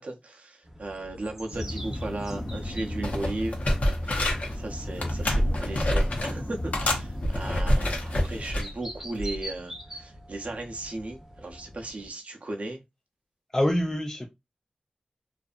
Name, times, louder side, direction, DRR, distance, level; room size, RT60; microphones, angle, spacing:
voice 1, 0.0-3.6 4.0-12.8, right 2 dB, 65° right, 0.6 m, -36 dB
sound 1, 0.6-12.1, right 1 dB, 15° right, 0.8 m, -45 dB
sound 2, 1.5-8.5, left 1 dB, 40° left, 0.9 m, -35 dB
sound 3, 2.6-2.8 3.0-4.6 5.0-6.4 6.7-8.7 9.2-9.4, left 1 dB, 70° left, 0.9 m, -27 dB
voice 2, 13.5-14.3, left 1 dB, 20° left, 0.5 m, -25 dB
2.6 x 2.4 x 2.4 m
wide cardioid pair, 55°, 3 cm